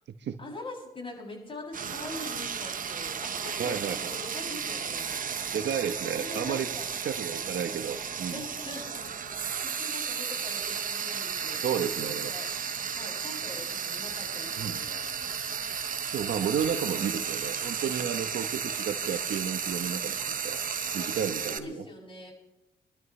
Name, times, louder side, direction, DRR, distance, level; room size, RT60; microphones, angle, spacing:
voice 1, 0.4-3.8 4.1-5.2 6.2-6.9 8.3-11.6 12.0-12.5 12.9-15.2 21.0-21.2 21.5-22.3, left 2 dB, 25° left, -1 dB, 7.5 m, -43 dB
Frying (food), 1.7-21.6, right 7 dB, 45° right, 1.1 m, -34 dB
voice 2, 3.6-4.0 5.5-6.7 7.0-8.4 11.6-12.3 14.6-14.8 16.1-20.6 20.9-21.8, right 8 dB, 60° right, 8 dB, 1.2 m, -32 dB
26.0 x 12.5 x 3.3 m, 0.95 s
cardioid pair, 90°, 20 cm